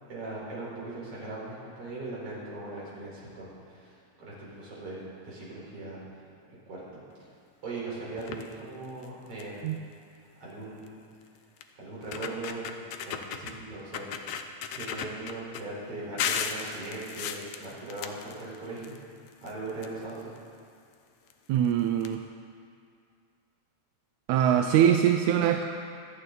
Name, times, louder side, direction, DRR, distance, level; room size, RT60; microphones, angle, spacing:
voice 1, 0.1-6.0 6.5-7.0 7.6-9.6 10.4-11.0 11.8-14.3 14.6-19.0 19.4-20.3, right 2 dB, 50° right, -7 dB, 5.2 m, -39 dB
sound 1, 8.2-8.5 9.0-9.1 9.4-9.7 10.9-11.0 11.6-11.7 12.0-13.6 13.9-15.6 16.2-19.0 19.3-20.4 21.3-21.4 21.7-21.8 22.0-22.1, left 7 dB, 75° left, 1.4 m, -35 dB
voice 2, 21.5-22.2 24.3-25.6, right 10 dB, 85° right, 5 dB, 2.0 m, -23 dB
25.5 x 9.1 x 4.0 m, 2.4 s
omnidirectional pair, 3.3 m